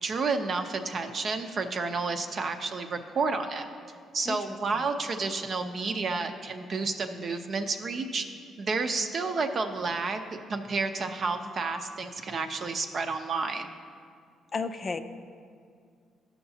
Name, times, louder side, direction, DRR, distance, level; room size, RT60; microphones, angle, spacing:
voice 1, 0.0-3.7 4.1-8.2 8.6-13.7, right 4 dB, 50° right, 6 dB, 0.6 m, -30 dB
voice 2, 14.5-15.0, left 4 dB, 40° left, 8 dB, 0.4 m, -32 dB
14.0 x 5.8 x 2.8 m, 2.2 s
cardioid pair, 90°, 0 cm